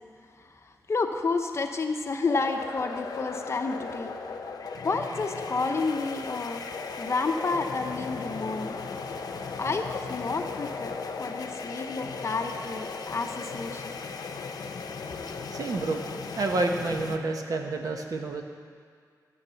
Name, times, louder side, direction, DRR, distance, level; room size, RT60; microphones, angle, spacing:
voice 1, 0.6-4.1 4.8-6.6 7.0-8.8 9.6-14.0 15.3-15.4, left 3 dB, 45° left, 5 dB, 0.8 m, -30 dB
sound 1, 2.3-17.2, left 4 dB, 75° left, 0.7 m, -37 dB
voice 2, 15.5-16.0 16.4-18.4, right 2 dB, 65° right, 3 dB, 1.2 m, -29 dB
11.0 x 8.0 x 6.9 m, 2.1 s
wide cardioid pair, 130°, 7 cm